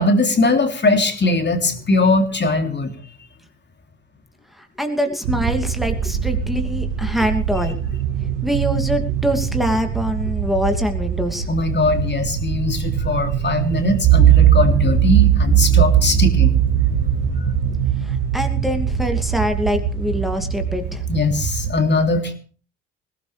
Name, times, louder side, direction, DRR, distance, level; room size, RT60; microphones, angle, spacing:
voice 1, 0.0-2.9 11.5-16.5 21.1-22.3, left 2 dB, 30° left, 5 dB, 3.3 m, -20 dB
voice 2, 4.5-7.8 8.4-11.5 18.0-21.0, equal, ahead, 5 dB, 2.7 m, -24 dB
sound 1, 5.2-21.7, right 7 dB, 70° right, 1.8 m, -25 dB
sound 2, 14.0-19.8, right 10 dB, 55° right, 2.5 m, -17 dB
21.5 x 17.5 x 3.5 m, 0.40 s
figure-of-eight pair, 55°, 36 cm